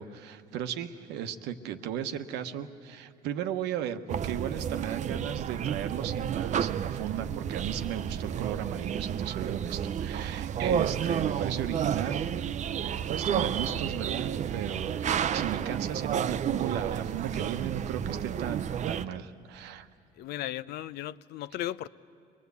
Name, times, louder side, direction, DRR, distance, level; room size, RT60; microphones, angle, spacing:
voice 1, 0.0-12.4 13.1-19.9, right 9 dB, 90° right, 8 dB, 1.0 m, -36 dB
sound 1, 4.1-19.1, right 9 dB, 45° right, 0.5 m, -31 dB
voice 2, 20.2-21.9, left 13 dB, 75° left, 17 dB, 0.5 m, -37 dB
24.0 x 21.0 x 8.2 m, 2.3 s
cardioid pair, 110°, 17 cm